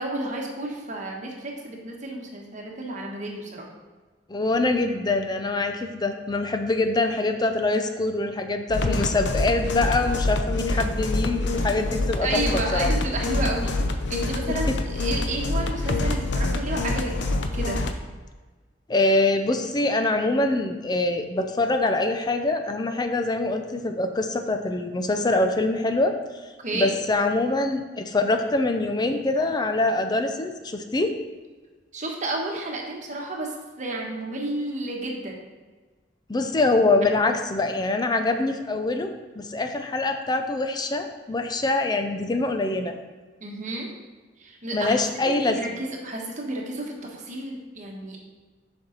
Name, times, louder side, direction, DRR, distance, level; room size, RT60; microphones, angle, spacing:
voice 1, 0.0-3.7 12.2-13.7 14.1-17.1 17.4-17.8 26.6-26.9 31.9-35.4 43.4-43.9 44.4-45.0 45.3-48.2, right 2 dB, 45° right, 0 dB, 1.2 m, -31 dB
voice 2, 4.3-12.4 12.7-12.9 14.5-14.8 18.9-26.2 26.7-31.1 36.3-43.0 44.7-45.8, left 2 dB, 25° left, 6 dB, 0.5 m, -24 dB
sound 1, 8.7-17.9, left 2 dB, 75° left, 0.6 m, -26 dB
7.0 x 5.4 x 3.9 m, 1.3 s
head